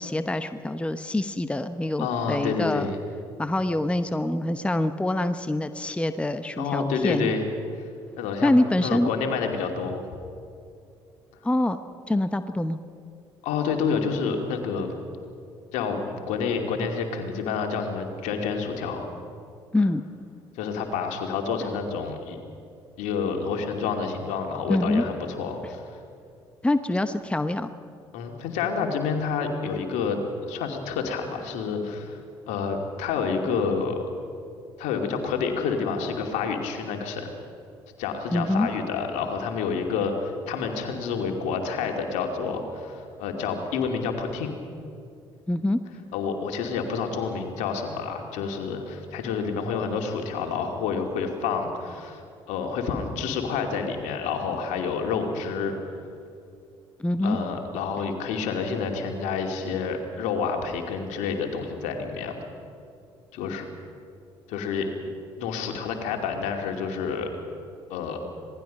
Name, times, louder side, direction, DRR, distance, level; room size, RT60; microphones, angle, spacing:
voice 1, 0.0-2.9 3.4-7.3 8.4-9.1 11.4-11.8 12.1-12.8 19.7-20.0 24.7-25.0 26.6-27.7 38.3-38.7 45.5-45.8 57.0-57.4, left 1 dB, 10° left, 11 dB, 0.9 m, -25 dB
voice 2, 2.0-3.0 6.6-7.4 8.2-10.0 13.4-14.9 15.7-19.1 20.5-22.4 23.0-26.0 28.1-30.2 30.4-32.2 32.5-34.0 34.8-37.3 38.0-44.6 46.1-52.2 52.5-55.8 57.2-62.4 63.3-63.7 64.5-64.9 65.4-67.3 67.9-68.2, left 5 dB, 65° left, 3 dB, 2.6 m, -28 dB
26.5 x 19.5 x 5.4 m, 2.5 s
figure-of-eight pair, 50°, 13 cm